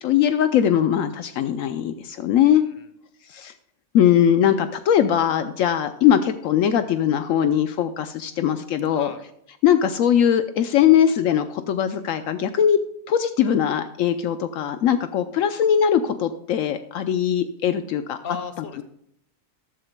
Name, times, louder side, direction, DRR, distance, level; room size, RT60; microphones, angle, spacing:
voice 1, 0.0-2.6 3.3-3.5 3.9-9.1 9.6-12.8 13.1-18.2, left 9 dB, 75° left, 9 dB, 1.0 m, -20 dB
voice 2, 2.4-2.9 8.8-9.2 18.2-18.8, left 6 dB, 45° left, 9 dB, 1.2 m, -36 dB
14.5 x 11.0 x 2.2 m, 0.72 s
omnidirectional pair, 1.4 m